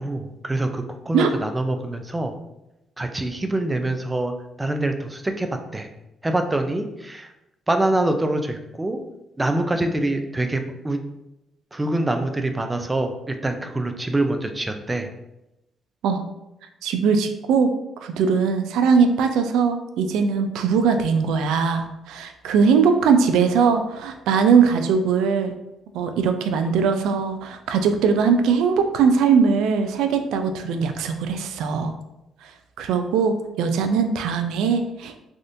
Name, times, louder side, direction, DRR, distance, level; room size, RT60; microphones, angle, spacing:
voice 1, 0.0-2.3 3.0-4.3 4.6-5.5 5.7-5.9 6.2-7.3 7.7-9.0 9.4-11.0 11.7-15.1, right 2 dB, 15° right, 6 dB, 0.4 m, -25 dB
voice 2, 16.8-17.7 18.0-25.5 25.9-31.9 32.8-35.2, right 6 dB, 90° right, 7 dB, 0.3 m, -20 dB
3.4 x 2.4 x 2.6 m, 0.90 s
cardioid pair, 90°, 0 cm